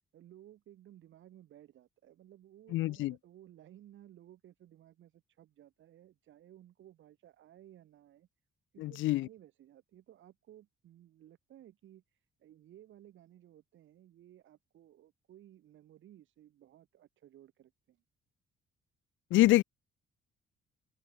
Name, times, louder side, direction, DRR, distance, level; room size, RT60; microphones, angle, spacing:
voice 1, 0.1-8.3 8.7-12.0 12.4-18.0, right 12 dB, 75° right, 5.4 m, -58 dB
voice 2, 2.7-3.1 8.8-9.3 19.3-19.6, left 17 dB, 75° left, 0.4 m, -26 dB
cardioid pair, 90°, 20 cm